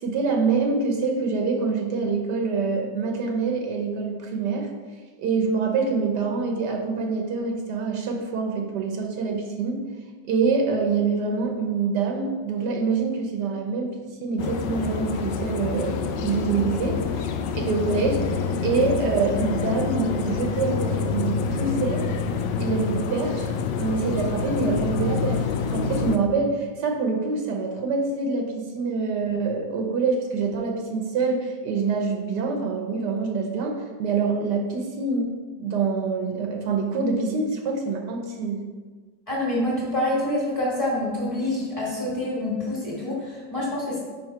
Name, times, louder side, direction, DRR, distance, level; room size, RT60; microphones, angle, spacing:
voice 1, 0.0-4.7 5.2-9.8 10.3-13.9 14.2-17.3 17.7-18.2 18.6-22.0 22.6-23.5 23.8-25.4 25.7-35.3 35.6-38.6, right 4 dB, 75° right, 1 dB, 1.4 m, -25 dB
sound 1, 14.4-26.2, left 5 dB, 80° left, 1.2 m, -27 dB
voice 2, 39.3-44.0, left 1 dB, 20° left, -6 dB, 2.0 m, -26 dB
5.7 x 5.3 x 4.5 m, 1.4 s
omnidirectional pair, 1.9 m